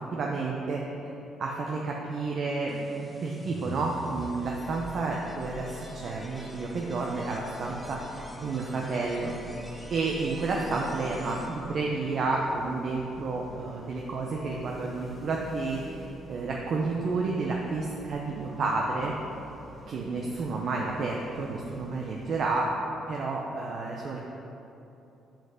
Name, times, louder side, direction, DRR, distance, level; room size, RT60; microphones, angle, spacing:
voice 1, 0.1-1.1 1.4-9.3 9.9-19.1 19.9-22.7 23.1-24.2, right 3 dB, 60° right, -1 dB, 0.8 m, -31 dB
sound 1, 2.7-11.8, equal, 5° right, 1.0 m, -44 dB
sound 2, 7.5-22.5, right 1 dB, 20° right, 1.8 m, -49 dB
5.8 x 5.5 x 6.6 m, 2.9 s
supercardioid pair, 70°, 0 cm